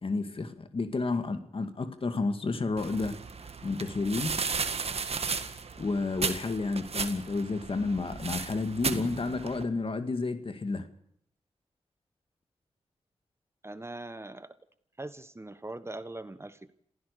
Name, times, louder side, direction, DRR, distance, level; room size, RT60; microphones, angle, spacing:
voice 1, 0.0-3.2 3.6-4.3 5.8-10.9, left 3 dB, 55° left, 9 dB, 2.2 m, -31 dB
sound 1, 2.8-9.6, right 5 dB, 65° right, 1.8 m, -35 dB
voice 2, 13.6-14.5 15.0-16.7, right 2 dB, 25° right, 13 dB, 1.3 m, -41 dB
26.5 x 15.5 x 6.8 m, 0.69 s
cardioid pair, 50°, 11 cm